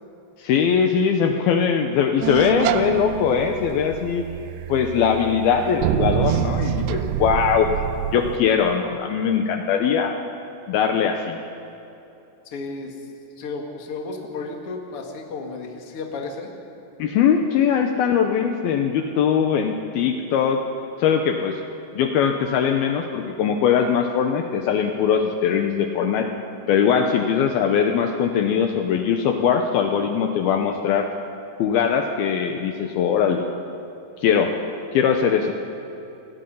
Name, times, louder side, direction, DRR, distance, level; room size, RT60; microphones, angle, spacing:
voice 1, 0.4-4.3 4.7-7.7 8.1-10.2 10.7-11.4 17.0-20.6 21.0-21.6 22.0-26.3 26.7-31.1 31.6-33.4 34.2-34.5 34.9-35.5, left 7 dB, 75° left, 5 dB, 2.7 m, -21 dB
sound 1, 2.2-8.4, right 10 dB, 85° right, 2.9 m, -26 dB
voice 2, 12.5-13.0 13.4-16.5, left 3 dB, 40° left, 2 dB, 2.5 m, -33 dB
28.5 x 20.5 x 5.6 m, 2.8 s
omnidirectional pair, 4.8 m